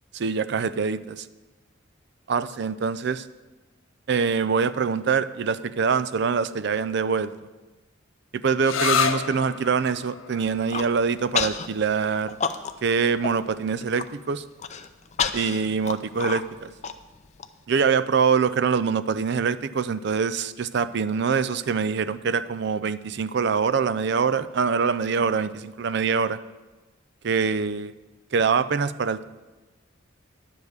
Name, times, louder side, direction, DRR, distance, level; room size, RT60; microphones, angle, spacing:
voice 1, 0.1-1.3 2.3-3.2 4.1-7.3 8.3-12.4 12.8-14.4 15.3-16.7 17.7-26.4 27.2-27.9 28.3-29.2, right 5 dB, 55° right, 14 dB, 0.4 m, -24 dB
sound 1, 8.6-16.0, left 6 dB, 85° left, 0.7 m, -32 dB
Human voice, 10.5-10.9 11.3-11.7 12.0-12.9 13.2-13.3 13.7-14.1 14.6-17.5, left 7 dB, 35° left, 0.5 m, -29 dB
10.5 x 5.3 x 8.0 m, 1.2 s
head